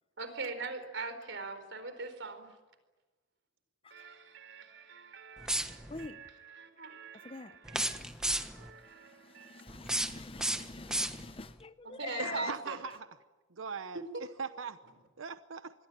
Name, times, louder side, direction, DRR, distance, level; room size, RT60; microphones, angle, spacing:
voice 1, 0.2-2.5 3.9-9.6 11.8-12.8 13.9-14.2, right 3 dB, 65° right, 4.4 m, -43 dB
sound 1, 5.4-6.1 7.6-8.7 9.7-11.5, right 1 dB, 5° right, 1.3 m, -34 dB
voice 2, 5.9-6.2 7.2-8.4 8.7-12.5, left 3 dB, 30° left, 0.8 m, -46 dB
voice 3, 12.2-13.1 13.6-14.0 14.4-14.8 15.2-15.7, right 5 dB, 90° right, 0.9 m, -39 dB
26.5 x 22.0 x 9.9 m
head